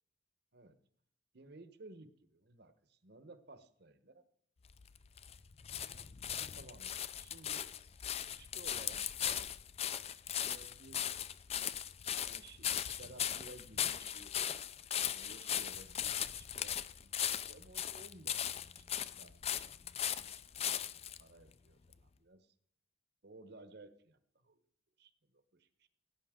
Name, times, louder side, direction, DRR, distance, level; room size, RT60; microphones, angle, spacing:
voice 1, 1.3-4.2 5.7-7.7 8.3-9.4 10.3-11.1 12.1-22.5 23.2-24.6 25.0-25.9, right 2 dB, 60° right, 11 dB, 1.1 m, -57 dB
sound 1, 4.7-21.2 21.9-22.0, left 10 dB, 35° left, 0.4 m, -38 dB
17.0 x 9.6 x 3.7 m, 0.64 s
head